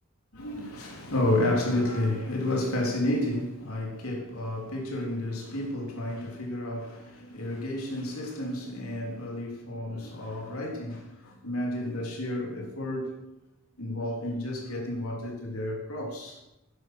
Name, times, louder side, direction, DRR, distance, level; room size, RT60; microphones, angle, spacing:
voice 1, 0.3-13.1 13.8-16.4, left 1 dB, 85° left, 3.5 m, -31 dB
11.0 x 11.0 x 6.2 m
head